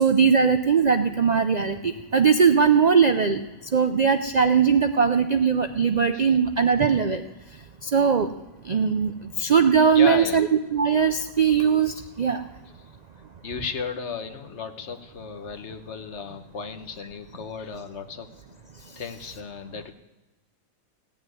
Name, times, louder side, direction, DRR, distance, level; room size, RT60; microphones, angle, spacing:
voice 1, 0.0-8.3 8.6-12.5 18.8-19.0, right 6 dB, 85° right, 8 dB, 0.3 m, -20 dB
voice 2, 9.9-10.4 13.4-18.3 19.0-19.9, left 6 dB, 55° left, 9 dB, 1.2 m, -34 dB
15.5 x 7.2 x 9.6 m, 1.1 s
omnidirectional pair, 1.6 m